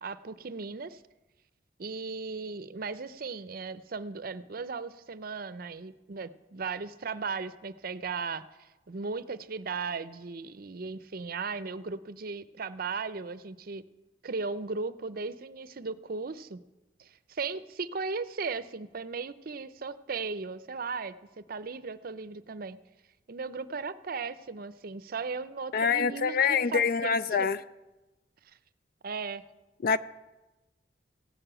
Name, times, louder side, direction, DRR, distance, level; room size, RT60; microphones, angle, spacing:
voice 1, 0.0-1.0 1.8-13.8 14.2-16.6 17.0-22.8 23.3-27.5 29.0-29.4, right 4 dB, 50° right, 0.6 m, -37 dB
voice 2, 25.7-27.6 29.8-30.0, left 6 dB, 50° left, 0.4 m, -25 dB
16.0 x 6.8 x 8.9 m
head